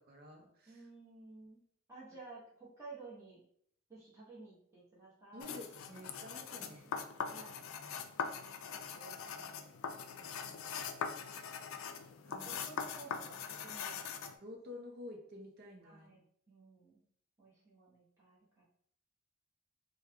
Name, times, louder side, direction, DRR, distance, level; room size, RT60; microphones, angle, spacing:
voice 1, 0.1-0.9 5.3-6.9 12.2-12.5 14.4-16.2, left 1 dB, 50° right, 2 dB, 0.7 m, -50 dB
voice 2, 0.7-1.6 1.9-3.4 3.9-5.6 6.5-6.9 7.3-7.6 8.4-10.5 11.2-11.6 12.3-14.1 15.8-16.2 16.5-17.0 17.4-18.6, right 3 dB, 15° right, -9 dB, 1.1 m, -55 dB
sound 1, 5.4-14.4, left 6 dB, 70° left, 0.4 m, -42 dB
3.4 x 2.2 x 3.4 m, 0.66 s
head